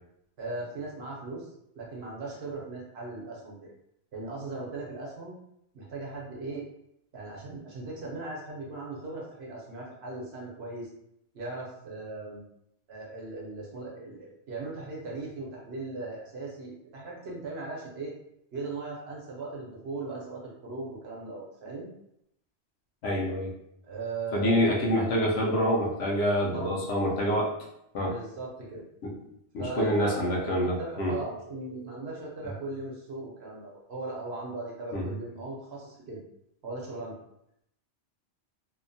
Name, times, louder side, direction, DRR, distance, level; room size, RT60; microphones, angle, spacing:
voice 1, 0.4-1.5 1.7-3.7 4.1-5.3 5.7-6.6 7.1-10.9 11.3-12.4 12.9-18.1 18.5-21.9 23.8-24.6 26.5-26.8 28.0-28.8 29.6-30.5 30.8-36.2 36.6-37.1, right 2 dB, 65° right, -3 dB, 1.0 m, -38 dB
voice 2, 23.0-23.5 24.3-27.5 27.9-28.1 29.0-29.1 29.5-31.1 34.9-35.1, equal, 70° left, -3 dB, 0.9 m, -26 dB
2.8 x 2.1 x 2.6 m, 0.77 s
omnidirectional pair, 1.2 m